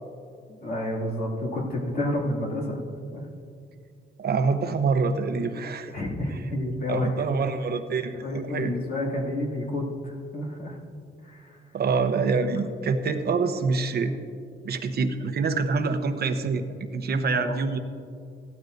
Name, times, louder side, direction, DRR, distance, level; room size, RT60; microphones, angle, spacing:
voice 1, 0.5-2.8 3.1-3.2 5.9-7.4 8.1-10.8 11.2-11.5 17.3-17.6, left 1 dB, 45° left, -4 dB, 2.6 m, -30 dB
voice 2, 4.2-5.9 6.9-8.7 11.7-14.1 14.6-17.8, right 4 dB, 55° right, 8 dB, 0.9 m, -26 dB
16.0 x 12.5 x 2.6 m, 2.4 s
cardioid pair, 90°, 20 cm